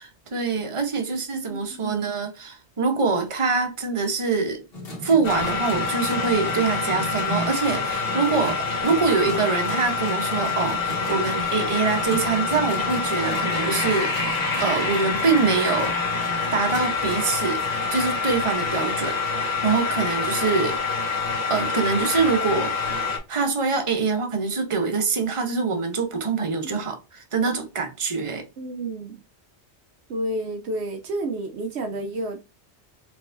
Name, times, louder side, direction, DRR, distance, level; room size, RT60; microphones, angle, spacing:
voice 1, 0.0-4.6 5.0-15.9 16.5-17.6 17.9-19.2 19.6-20.8 21.5-22.7 23.3-28.4, right 4 dB, 30° right, 0.9 m, -24 dB
voice 2, 1.1-2.1 28.6-29.2 30.1-32.4, right 1 dB, 75° right, 1.0 m, -31 dB
sound 1, 4.7-18.5, equal, 65° left, 1.9 m, -38 dB
sound 2, 5.2-23.2, left 4 dB, 35° left, 1.6 m, -26 dB
4.6 x 3.4 x 2.6 m
omnidirectional pair, 1.1 m